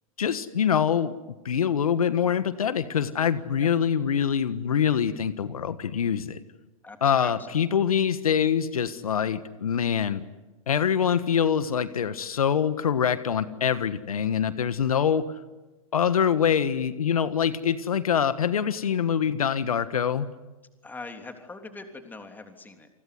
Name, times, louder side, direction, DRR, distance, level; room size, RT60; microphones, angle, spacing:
voice 1, 0.2-1.1 1.4-6.4 7.0-10.2 10.7-15.2 15.9-20.3, left 8 dB, 85° left, 13 dB, 1.5 m, -24 dB
voice 2, 6.8-7.7 20.8-22.9, left 3 dB, 10° left, 6 dB, 3.3 m, -42 dB
29.0 x 20.5 x 9.6 m, 1.1 s
hypercardioid pair, 120°, 18 cm